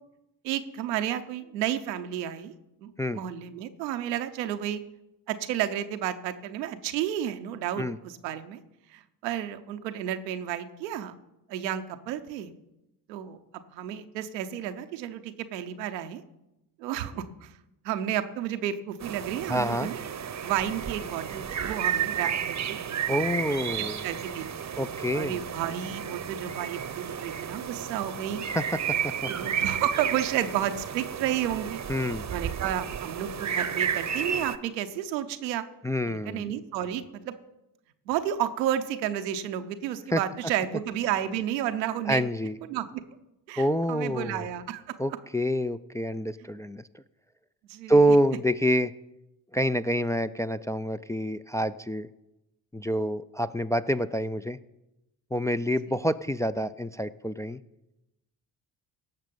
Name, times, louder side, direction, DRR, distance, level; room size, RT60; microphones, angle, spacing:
voice 1, 0.4-2.5 2.8-4.8 5.3-8.6 8.9-11.1 11.5-12.5 13.1-13.4 13.7-16.2 16.8-17.5 17.8-20.0 20.4-23.2 23.8-24.4 25.1-28.4 29.3-31.8 32.3-35.6 36.1-37.4 38.1-42.2 42.6-43.0 43.5-45.0 47.7-48.2 55.9-56.0, right 11 dB, 90° right, 9 dB, 0.7 m, -32 dB
sound 1, 19.0-34.6, right 8 dB, 35° right, 0.8 m, -32 dB
voice 2, 19.5-19.9 23.1-24.0 24.8-25.4 28.5-29.5 31.9-32.3 35.8-36.5 40.1-40.2 42.1-42.6 43.6-44.5 45.0-46.8 47.9-48.9 49.5-52.1 52.7-54.6 55.3-57.6, equal, 5° left, 10 dB, 0.3 m, -27 dB
17.5 x 6.6 x 5.2 m, 0.92 s
hypercardioid pair, 40°, 49 cm